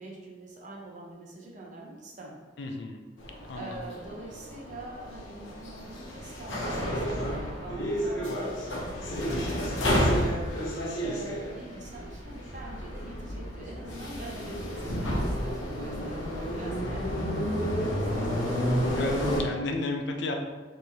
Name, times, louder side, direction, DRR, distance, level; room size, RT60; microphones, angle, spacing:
voice 1, 0.0-2.4 3.5-10.2 11.0-18.7, right 2 dB, 40° right, -2 dB, 0.8 m, -44 dB
voice 2, 2.6-3.0 3.5-3.8 19.0-20.3, left 3 dB, 65° left, 3 dB, 0.5 m, -32 dB
sound 1, 3.2-19.4, equal, 85° left, 0.8 m, -31 dB
4.4 x 3.1 x 2.7 m, 1.3 s
head